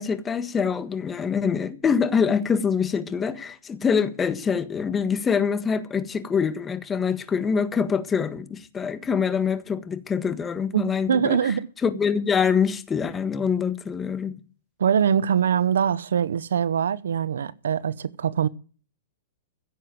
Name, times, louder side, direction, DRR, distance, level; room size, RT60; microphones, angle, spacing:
voice 1, 0.0-11.5 11.8-14.4, left 6 dB, 15° left, 1.6 m, -25 dB
voice 2, 10.7-11.7 14.8-18.5, right 8 dB, 85° right, 0.8 m, -23 dB
15.5 x 7.8 x 7.7 m
hypercardioid pair, 130°, 0 cm